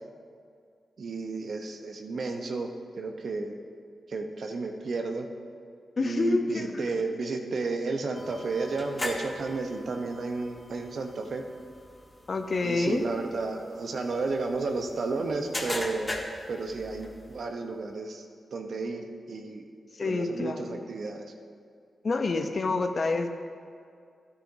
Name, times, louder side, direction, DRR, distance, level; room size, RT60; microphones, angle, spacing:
voice 1, 1.0-2.7 3.0-3.6 4.1-5.3 6.0-11.4 12.6-16.1 16.5-18.2 18.5-19.6 20.0-21.2, right 3 dB, 65° right, 4 dB, 0.9 m, -32 dB
voice 2, 6.0-7.0 12.3-13.1 19.9-20.9 22.0-23.3, left 3 dB, 55° left, 7 dB, 0.7 m, -28 dB
sound 1, 8.1-17.4, left 1 dB, 20° left, 1.6 m, -40 dB
12.5 x 9.7 x 2.8 m, 2.3 s
supercardioid pair, 40°, 0 cm